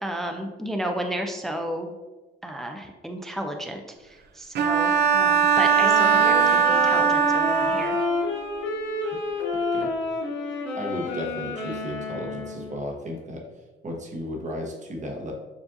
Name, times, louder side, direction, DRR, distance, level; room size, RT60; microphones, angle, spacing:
voice 1, 0.0-1.9 2.4-8.1, right 1 dB, ahead, 4 dB, 0.4 m, -32 dB
Bowed string instrument, 4.6-8.3, right 6 dB, 60° right, 0.5 m, -20 dB
sound 1, 5.8-12.8, left 3 dB, 70° left, 1.2 m, -29 dB
voice 2, 10.7-13.4 13.8-15.3, equal, 40° right, 0 dB, 1.0 m, -34 dB
7.0 x 2.5 x 2.5 m, 1.2 s
cardioid pair, 90°, 20 cm